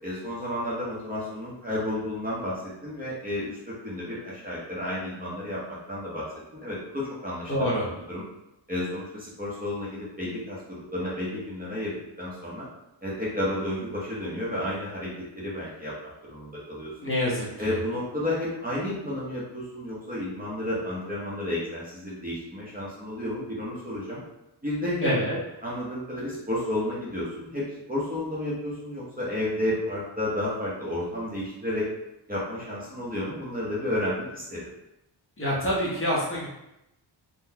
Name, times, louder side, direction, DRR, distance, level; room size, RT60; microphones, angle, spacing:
voice 1, 0.0-6.2 6.5-7.5 8.1-8.2 8.7-12.7 13.0-16.9 17.6-24.2 24.6-25.1 25.6-31.9 32.3-34.7, left 1 dB, 20° right, -7 dB, 0.7 m, -32 dB
voice 2, 7.5-7.8 17.0-17.7 25.0-25.4 35.4-36.5, equal, 30° left, -6 dB, 0.7 m, -26 dB
3.8 x 2.1 x 2.7 m, 0.89 s
wide cardioid pair, 165°, 46 cm